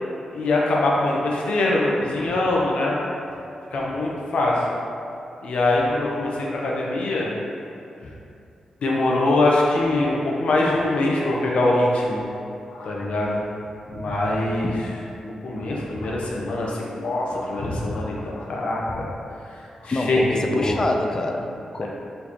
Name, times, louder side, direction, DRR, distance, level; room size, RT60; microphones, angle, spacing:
voice 1, 0.3-3.0 3.7-4.6 5.4-7.3 8.8-12.2 12.7-13.4 13.9-14.7 15.2-19.0 19.5-20.8 21.8-21.9, left 2 dB, 75° left, -3 dB, 0.7 m, -23 dB
voice 2, 19.9-21.9, left 2 dB, 30° left, 3 dB, 0.3 m, -26 dB
4.2 x 3.3 x 2.9 m, 2.7 s
cardioid pair, 100°, 2 cm